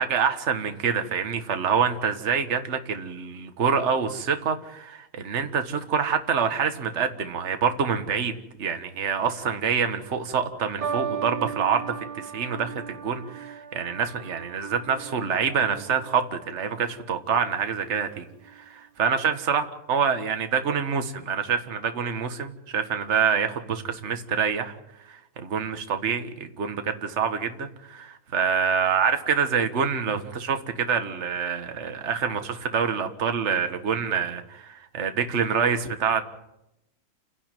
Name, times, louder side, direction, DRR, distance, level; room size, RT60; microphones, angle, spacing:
voice 1, 0.0-8.3 8.6-18.2 18.5-19.6 19.9-24.8 25.0-36.2, right 6 dB, 35° right, 7 dB, 1.6 m, -26 dB
sound 1, 10.8-17.3 18.2-18.6, right 8 dB, 55° right, 2.0 m, -37 dB
29.5 x 11.0 x 9.1 m, 0.89 s
omnidirectional pair, 2.3 m